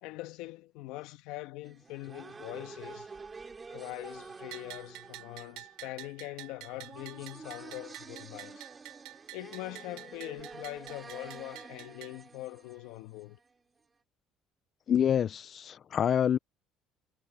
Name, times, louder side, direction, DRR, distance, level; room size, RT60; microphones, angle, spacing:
voice 1, 0.0-3.1 3.7-8.7 9.3-13.4, left 18 dB, 80° left, 1.4 m, -43 dB
sound 1, 1.6-13.5, right 4 dB, 20° right, 4.3 m, -49 dB
Bell, 4.5-12.1, right 20 dB, 80° right, 5.0 m, -49 dB
voice 2, 14.9-16.4, left 9 dB, 40° left, 0.4 m, -27 dB
cardioid pair, 125°, 0 cm